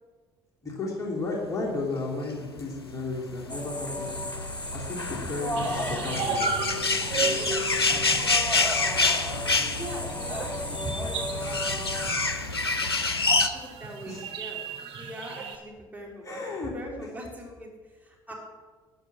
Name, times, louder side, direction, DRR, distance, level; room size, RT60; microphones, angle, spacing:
voice 1, 0.6-4.2 4.7-5.6 5.9-6.4 14.1-14.3 16.2-16.7, left 3 dB, 25° left, -3 dB, 3.0 m, -33 dB
sound 1, 2.4-13.5, left 3 dB, 90° left, 0.6 m, -28 dB
sound 2, 3.5-12.1, left 1 dB, 10° left, 1.8 m, -34 dB
sound 3, 5.6-15.6, right 5 dB, 45° right, 1.9 m, -35 dB
voice 2, 9.7-11.9 13.5-16.4 16.7-17.7 18.0-18.3, equal, 15° right, -2 dB, 3.4 m, -41 dB
13.0 x 8.8 x 6.2 m, 1.4 s
figure-of-eight pair, 60°, 13 cm